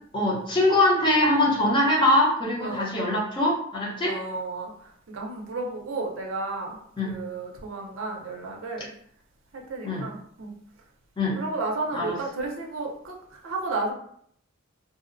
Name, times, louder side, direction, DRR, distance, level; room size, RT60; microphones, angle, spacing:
voice 1, 0.1-4.2 7.0-7.1 9.8-10.0 11.2-11.4 11.9-12.1, left 1 dB, 25° left, -4 dB, 0.6 m, -22 dB
voice 2, 2.6-2.9 4.0-6.8 7.0-8.9 9.5-10.5 11.4-13.9, right 3 dB, 70° right, 0 dB, 0.5 m, -33 dB
2.7 x 2.0 x 2.5 m, 0.65 s
head